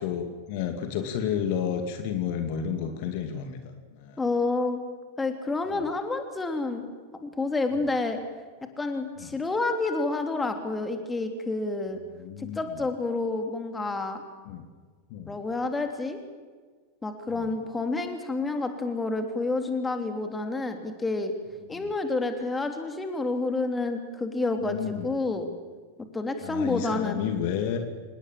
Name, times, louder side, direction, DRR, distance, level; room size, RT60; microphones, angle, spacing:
voice 1, 0.0-4.2 5.7-5.9 9.2-9.3 11.9-12.9 14.4-14.7 15.1-15.4 17.3-17.5 21.6-21.9 24.6-25.1 26.4-27.8, left 8 dB, 50° left, 6 dB, 2.4 m, -32 dB
voice 2, 4.2-4.8 5.2-6.8 7.2-8.2 8.8-12.0 12.4-14.2 15.3-16.2 17.0-21.3 21.7-25.5 26.1-27.2, left 3 dB, 10° left, 6 dB, 3.3 m, -29 dB
26.5 x 20.0 x 7.6 m, 1.5 s
figure-of-eight pair, 90°, 0 cm